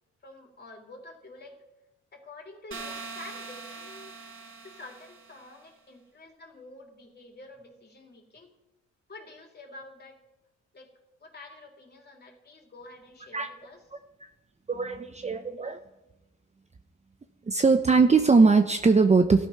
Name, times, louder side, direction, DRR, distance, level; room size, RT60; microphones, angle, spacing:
voice 1, 0.2-1.6 2.1-4.1 4.6-8.5 9.1-10.2 10.7-10.9 11.2-13.8, left 2 dB, 35° left, 1 dB, 3.6 m, -48 dB
sound 1, 2.7-5.6, right 4 dB, 45° right, 1.9 m, -42 dB
voice 2, 14.7-15.8 17.5-19.5, right 4 dB, 20° right, 6 dB, 0.9 m, -21 dB
14.0 x 12.5 x 5.8 m, 1.0 s
cardioid pair, 90°, 30 cm